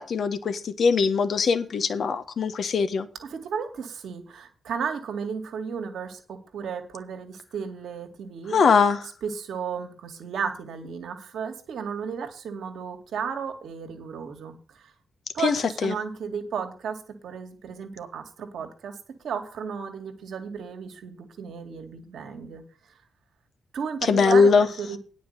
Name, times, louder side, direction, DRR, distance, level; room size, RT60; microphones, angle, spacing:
voice 1, 0.0-3.1 8.5-9.0 15.4-15.9 24.0-24.7, left 5 dB, 60° left, 10 dB, 1.2 m, -21 dB
voice 2, 3.2-8.6 9.2-14.9 15.3-19.0 19.2-22.6 23.7-24.5 24.8-25.0, right 6 dB, 70° right, 5 dB, 2.0 m, -34 dB
9.6 x 5.2 x 8.1 m, 0.38 s
hypercardioid pair, 45°, 0 cm